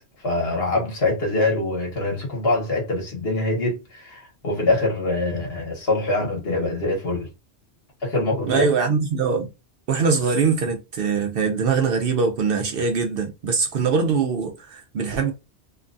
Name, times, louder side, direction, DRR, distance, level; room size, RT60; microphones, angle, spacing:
voice 1, 0.2-7.3 8.0-8.7, left 2 dB, 65° left, 1.4 m, -24 dB
voice 2, 8.4-9.5 9.9-15.3, right 5 dB, 65° right, 0.7 m, -22 dB
2.9 x 2.2 x 2.5 m
omnidirectional pair, 1.1 m